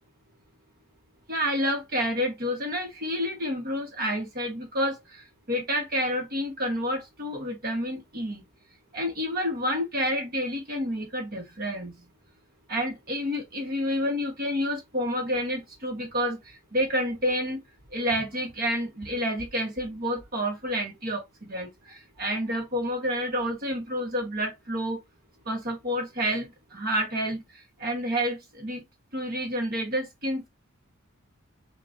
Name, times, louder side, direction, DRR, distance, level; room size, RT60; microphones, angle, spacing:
voice 1, 1.3-8.4 8.9-12.0 12.7-17.6 17.9-25.0 25.4-28.8 29.1-30.5, equal, 45° right, 1.1 m, -29 dB
6.4 x 2.3 x 2.5 m
head